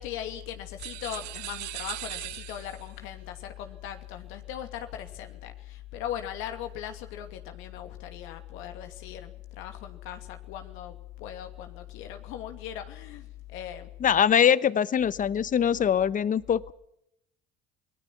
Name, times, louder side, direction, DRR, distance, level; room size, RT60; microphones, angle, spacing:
voice 1, 0.0-13.9, left 10 dB, 75° left, 6 dB, 2.7 m, -39 dB
sound 1, 0.8-3.0, right 18 dB, 90° right, 1.0 m, -39 dB
voice 2, 14.0-16.7, left 8 dB, 40° left, 18 dB, 1.0 m, -23 dB
27.5 x 19.0 x 6.1 m, 0.75 s
supercardioid pair, 80°, 21 cm